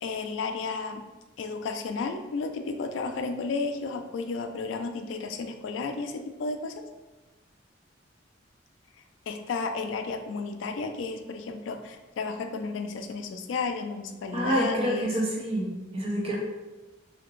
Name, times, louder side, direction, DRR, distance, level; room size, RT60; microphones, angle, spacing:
voice 1, 0.0-1.0 1.4-6.8 9.3-15.1, left 4 dB, 85° left, 6 dB, 0.3 m, -33 dB
voice 2, 14.3-16.4, right 1 dB, 35° right, -2 dB, 0.6 m, -27 dB
2.7 x 2.4 x 3.0 m, 1.1 s
head